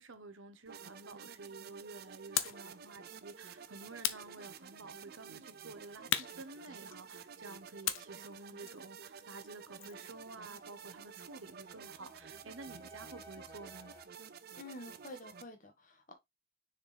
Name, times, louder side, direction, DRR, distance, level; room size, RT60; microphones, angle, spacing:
voice 1, 0.0-13.9, right 3 dB, 80° right, 1.1 m, -51 dB
sound 1, 0.7-15.4, right 6 dB, 50° right, 0.5 m, -51 dB
sound 2, 2.4-2.7 4.0-4.9 6.1-7.2 7.8-10.1, left 11 dB, 90° left, 0.7 m, -38 dB
sound 3, 8.2-8.7 10.7-14.1, left 1 dB, 15° left, 0.6 m, -58 dB
voice 2, 14.5-16.1, left 1 dB, 40° left, 1.6 m, -49 dB
6.7 x 4.4 x 3.4 m
head